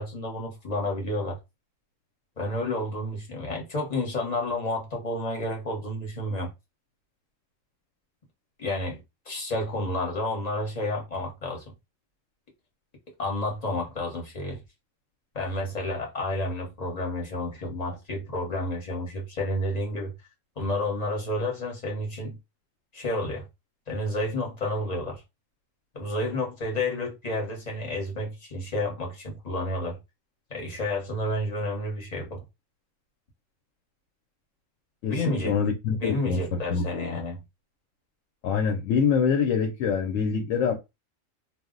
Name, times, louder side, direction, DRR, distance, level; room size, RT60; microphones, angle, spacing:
voice 1, 0.0-1.4 2.4-6.5 8.6-9.0 9.3-11.6 13.2-14.6 15.3-20.1 20.6-22.4 22.9-23.4 23.9-25.2 25.9-30.0 30.5-32.4 35.1-35.6 36.0-37.4, left 1 dB, 35° left, 0.9 m, -30 dB
voice 2, 35.0-36.4 36.7-37.0 38.4-40.7, left 6 dB, 75° left, 0.9 m, -25 dB
2.4 x 2.0 x 3.6 m
omnidirectional pair, 1.3 m